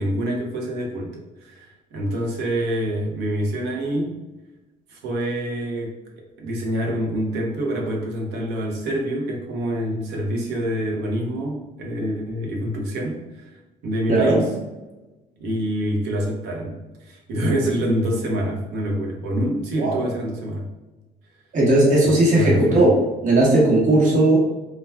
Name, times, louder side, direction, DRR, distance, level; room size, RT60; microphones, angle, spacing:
voice 1, 0.0-4.2 4.9-6.0 6.4-13.5 13.8-14.5 15.4-20.7 22.0-22.9, equal, 85° right, -1 dB, 0.7 m, -26 dB
voice 2, 14.1-14.4 19.8-20.0 21.5-22.9 23.2-24.5, right 2 dB, 50° right, -4 dB, 1.0 m, -17 dB
3.3 x 2.2 x 2.3 m, 1.1 s
cardioid pair, 110°, 17 cm